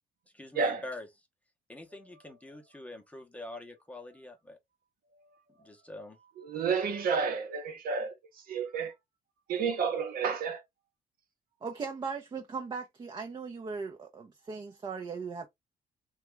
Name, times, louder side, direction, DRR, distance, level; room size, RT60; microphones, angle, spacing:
voice 1, 0.3-1.1 1.7-4.6 5.6-6.2, left 1 dB, 10° left, 0.8 m, -44 dB
voice 2, 6.4-8.1 8.5-8.9 9.5-10.6, right 5 dB, 60° right, 0.9 m, -30 dB
voice 3, 11.6-15.5, right 5 dB, 25° right, 0.5 m, -38 dB
2.8 x 2.3 x 3.2 m
cardioid pair, 110°, 17 cm